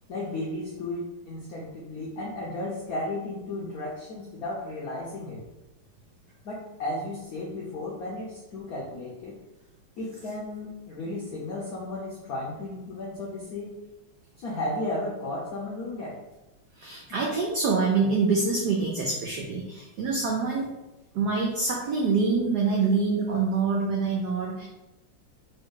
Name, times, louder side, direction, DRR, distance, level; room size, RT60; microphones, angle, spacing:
voice 1, 0.1-5.4 6.4-9.4 10.0-13.7 14.4-16.2, left 2 dB, 75° left, -5 dB, 0.8 m, -34 dB
voice 2, 16.8-20.7 21.1-24.7, right 4 dB, 85° right, -1 dB, 0.8 m, -25 dB
3.4 x 2.6 x 3.7 m, 0.98 s
omnidirectional pair, 2.3 m